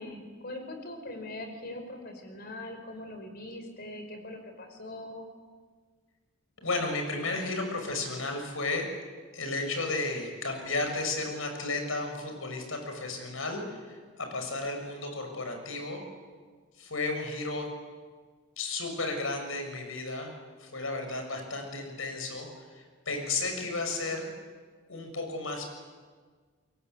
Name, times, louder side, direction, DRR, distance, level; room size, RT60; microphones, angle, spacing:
voice 1, 0.0-5.2, left 1 dB, 50° left, 6 dB, 5.3 m, -41 dB
voice 2, 6.6-8.8 9.3-16.0 16.8-17.6 18.6-20.3 20.6-24.3 24.9-25.6, left 3 dB, 80° left, 4 dB, 6.8 m, -33 dB
29.0 x 23.0 x 8.4 m, 1.5 s
head